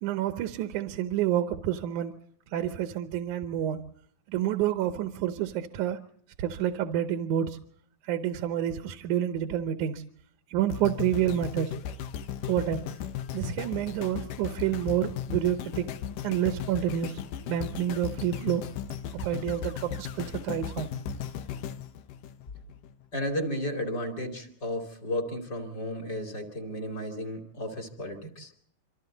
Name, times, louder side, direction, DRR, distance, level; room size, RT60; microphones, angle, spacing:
voice 1, 0.0-2.1 2.5-3.8 4.3-6.0 6.4-7.6 8.0-10.0 10.5-11.7 12.5-12.9 13.3-15.9 16.2-17.2 17.5-18.6 19.2-20.9, right 11 dB, 75° right, 2.4 m, -28 dB
sound 1, 10.7-22.9 23.4-23.5, left 9 dB, 85° left, 2.7 m, -36 dB
voice 2, 23.1-28.5, left 1 dB, 30° left, 3.1 m, -33 dB
27.0 x 25.0 x 4.0 m
omnidirectional pair, 3.7 m